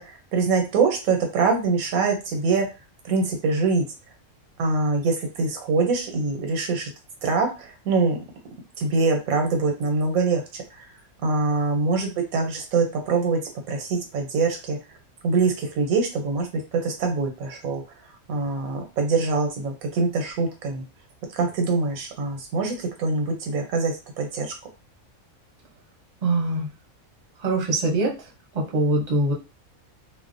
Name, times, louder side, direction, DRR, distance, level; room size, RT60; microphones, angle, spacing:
voice 1, 0.0-2.7 3.0-3.8 4.6-6.9 7.2-8.2 8.8-10.8 11.2-13.4 13.7-14.8 15.2-16.5 16.7-17.8 18.3-20.8 21.3-24.5, right 4 dB, 85° right, 4 dB, 1.1 m, -24 dB
voice 2, 26.2-26.7 27.4-28.1 28.5-29.3, right 2 dB, 40° right, -1 dB, 0.6 m, -22 dB
2.5 x 2.1 x 2.5 m, 0.29 s
omnidirectional pair, 1.4 m